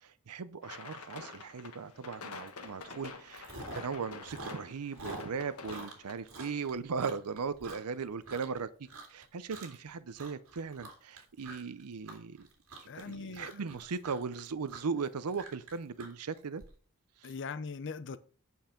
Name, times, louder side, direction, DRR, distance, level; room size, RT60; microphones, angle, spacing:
voice 1, 0.0-8.7 9.1-12.5 12.9-16.6 17.2-17.3, right 5 dB, 90° right, 0.6 m, -38 dB
sound 1, 0.6-6.1, left 4 dB, 75° left, 1.5 m, -47 dB
Chewing mastication, 2.5-2.7 3.0-8.6 8.9-9.2 9.5-9.9 10.2-16.7, right 2 dB, 65° right, 2.5 m, -47 dB
voice 2, 12.9-13.8 17.2-18.2, left 4 dB, 55° left, 0.6 m, -41 dB
9.0 x 5.5 x 5.8 m
head